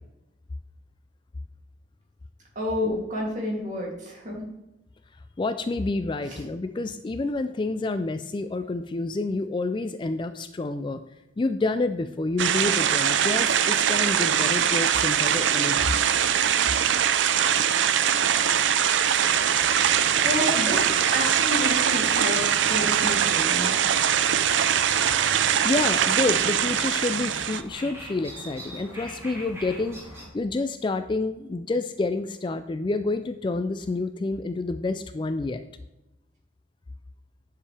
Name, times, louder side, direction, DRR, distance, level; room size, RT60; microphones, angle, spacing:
voice 1, 2.5-4.5 6.3-6.4 20.2-23.8, left 1 dB, 40° right, -3 dB, 2.8 m, -30 dB
voice 2, 5.4-11.0 11.4-15.9 25.6-30.0 30.3-35.6, left 3 dB, 25° left, 10 dB, 0.3 m, -28 dB
sound 1, 12.4-27.6, right 9 dB, 80° right, 0.5 m, -22 dB
sound 2, 19.2-30.3, right 1 dB, 15° right, 2.7 m, -40 dB
10.0 x 6.7 x 3.4 m, 0.93 s
head